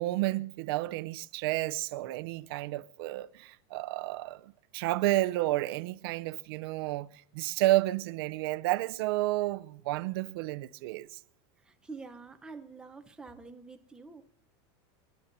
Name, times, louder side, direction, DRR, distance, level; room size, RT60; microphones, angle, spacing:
voice 1, 0.0-11.2, right 17 dB, 60° right, 0.6 m, -31 dB
voice 2, 11.6-14.2, right 4 dB, 5° right, 0.8 m, -47 dB
28.5 x 11.5 x 2.7 m
supercardioid pair, 180°, 14 cm